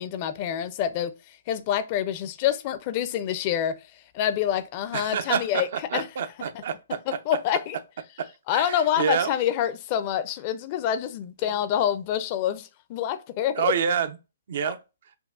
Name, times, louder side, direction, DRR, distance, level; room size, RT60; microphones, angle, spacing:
voice 1, 0.0-3.8 4.1-5.7 5.9-6.0 7.1-7.8 8.5-13.7 14.6-14.7, left 10 dB, 35° left, 0.4 m, -27 dB
voice 2, 4.9-7.2 8.2-9.3 13.5-14.2 14.5-14.8, right 7 dB, 55° right, 0.5 m, -28 dB
5.3 x 2.3 x 2.4 m
hypercardioid pair, 130°, 0 cm